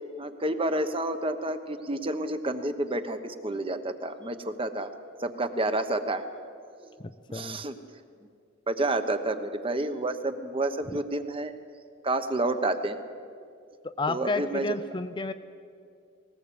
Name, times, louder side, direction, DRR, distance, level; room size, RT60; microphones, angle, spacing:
voice 1, 0.2-4.9 5.2-6.2 7.3-7.7 8.7-11.5 12.0-13.0 14.1-14.6, right 2 dB, 25° right, 9 dB, 1.1 m, -29 dB
voice 2, 7.0-7.6 10.9-11.0 13.8-15.3, left 3 dB, 20° left, 9 dB, 0.5 m, -32 dB
19.0 x 19.0 x 8.7 m, 2.3 s
head